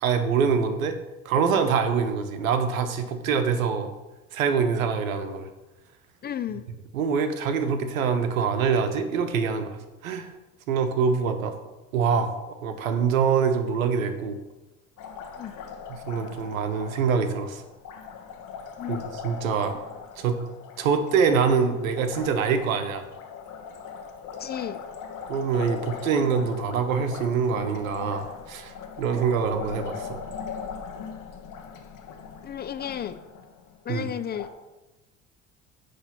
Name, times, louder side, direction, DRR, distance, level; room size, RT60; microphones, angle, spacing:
voice 1, 0.0-1.0 1.2-3.9 4.3-5.5 6.9-10.3 10.7-11.6 11.9-14.4 15.9-17.6 18.9-19.8 20.2-20.4 20.8-23.0 25.3-30.2 33.9-34.0, right 6 dB, 85° right, 9 dB, 0.9 m, -25 dB
voice 2, 6.2-6.7 15.4-15.5 18.8-19.1 24.4-24.8 32.4-33.2 33.8-34.5, left 9 dB, 25° left, 12 dB, 0.4 m, -33 dB
Liquid, 15.0-34.5, left 6 dB, 50° left, 1.1 m, -40 dB
9.7 x 3.4 x 5.8 m, 1.1 s
hypercardioid pair, 65°, 40 cm